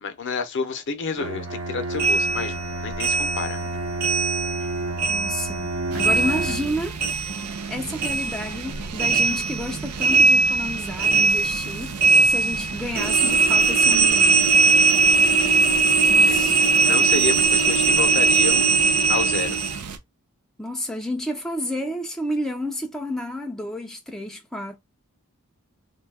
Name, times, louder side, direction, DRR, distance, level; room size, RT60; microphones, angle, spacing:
voice 1, 0.0-2.6 2.8-3.6 16.2-16.4 16.8-18.7 19.1-19.6, left 5 dB, 55° left, 0.6 m, -29 dB
Bowed string instrument, 1.2-6.8, right 2 dB, 70° right, 0.8 m, -30 dB
sound 1, 2.0-4.7 5.0-7.7 8.0-19.8, right 4 dB, 40° right, 1.0 m, -20 dB
voice 2, 5.1-7.0 7.7-12.0 12.3-14.4 16.1-16.7 20.6-24.8, left 1 dB, ahead, 0.4 m, -30 dB
sound 2, 5.9-20.0, right 5 dB, 90° right, 0.5 m, -35 dB
2.6 x 2.3 x 3.3 m
head